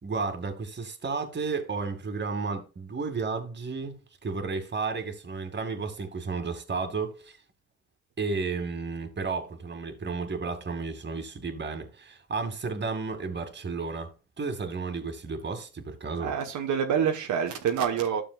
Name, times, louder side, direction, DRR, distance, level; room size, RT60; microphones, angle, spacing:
voice 1, 0.0-7.4 8.2-14.1 14.4-16.3, right 4 dB, 35° right, 2.3 m, -32 dB
voice 2, 16.2-18.2, right 8 dB, 80° right, 1.3 m, -27 dB
12.5 x 6.9 x 2.4 m
cardioid pair, 90°, 30 cm